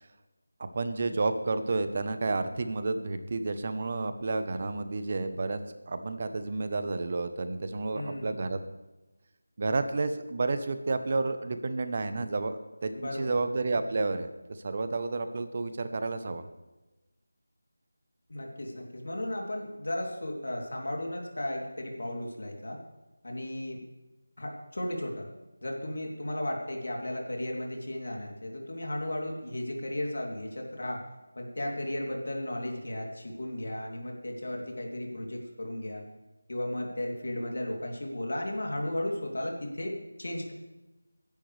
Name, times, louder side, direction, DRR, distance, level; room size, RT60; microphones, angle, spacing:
voice 1, 0.6-5.6 5.9-8.6 9.6-16.5, right 3 dB, 35° right, 10 dB, 1.0 m, -31 dB
voice 2, 7.9-8.3 12.9-13.4 18.3-22.8 23.2-23.8 24.4-25.3 25.6-31.0 31.3-36.0 36.5-40.5, left 1 dB, 70° left, 0 dB, 3.1 m, -35 dB
21.0 x 10.5 x 3.4 m, 1.1 s
figure-of-eight pair, 170°, 0 cm